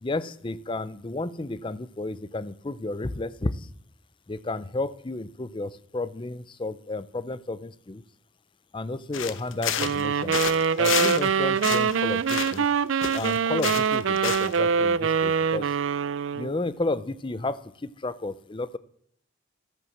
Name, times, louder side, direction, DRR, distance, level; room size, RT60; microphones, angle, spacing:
voice 1, 0.0-3.7 4.3-8.0 8.7-10.4 10.8-12.7 13.1-15.8 16.3-18.8, left 2 dB, 25° left, 16 dB, 0.5 m, -32 dB
sound 1, 9.1-10.1 10.3-11.3 11.6-12.7 13.0-14.6, left 8 dB, 80° left, 1.0 m, -30 dB
sound 2, 9.8-16.6, right 6 dB, 80° right, 0.5 m, -24 dB
13.0 x 9.1 x 7.2 m, 0.66 s
head